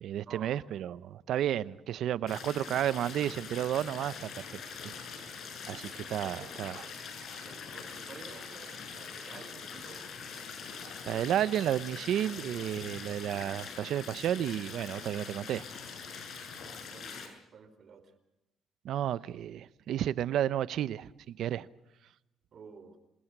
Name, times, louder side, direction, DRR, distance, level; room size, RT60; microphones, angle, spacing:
voice 1, 0.0-4.4 5.7-6.8 11.1-15.7 18.8-21.7, right 11 dB, 75° right, 0.9 m, -32 dB
sound 1, 2.3-17.3, left 5 dB, 65° left, 7.1 m, -43 dB
voice 2, 5.9-6.5 6.8-6.9 7.4-10.1 16.9-18.1 22.5-23.0, right 5 dB, 55° right, 4.6 m, -51 dB
27.5 x 21.5 x 6.2 m
cardioid pair, 90°, 0 cm